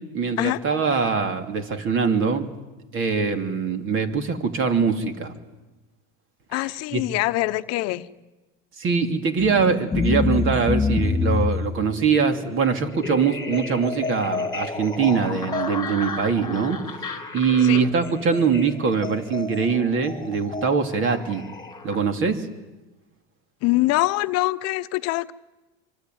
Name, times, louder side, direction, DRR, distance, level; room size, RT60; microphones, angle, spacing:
voice 1, 0.1-2.5 2.9-5.3 6.9-7.0 8.8-21.4 21.8-22.5, right 5 dB, 45° right, 7 dB, 3.0 m, -23 dB
voice 2, 6.5-8.1 17.6-17.8 23.6-25.3, left 19 dB, 60° left, 12 dB, 0.9 m, -24 dB
sound 1, 9.4-22.0, left 4 dB, 15° left, 2.7 m, -29 dB
26.0 x 24.5 x 9.4 m, 1.1 s
supercardioid pair, 115°, 29 cm